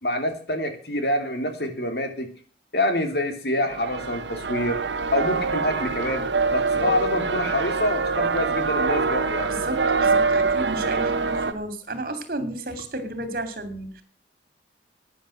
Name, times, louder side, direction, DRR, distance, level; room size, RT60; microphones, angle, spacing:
voice 1, 0.0-2.3 2.7-4.8 5.1-6.3 6.5-9.5, left 1 dB, 60° left, 6 dB, 2.9 m, -26 dB
sound 1, 3.7-11.5, right 4 dB, 80° right, 1.1 m, -24 dB
voice 2, 9.5-14.0, right 2 dB, 55° right, 9 dB, 2.8 m, -33 dB
11.5 x 9.9 x 7.7 m, 0.42 s
head